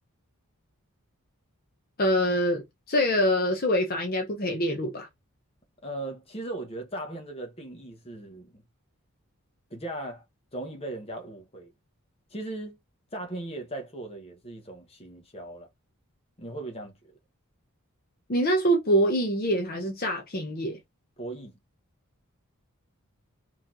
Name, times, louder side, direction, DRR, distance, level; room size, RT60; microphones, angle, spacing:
voice 1, 2.0-5.1 18.3-20.8, equal, 40° left, 0.8 m, -25 dB
voice 2, 5.8-8.6 9.7-10.2 10.5-11.7 12.3-12.8 13.1-15.7 16.4-16.9 21.2-21.6, right 2 dB, 25° left, 1.2 m, -38 dB
4.5 x 3.1 x 3.7 m
head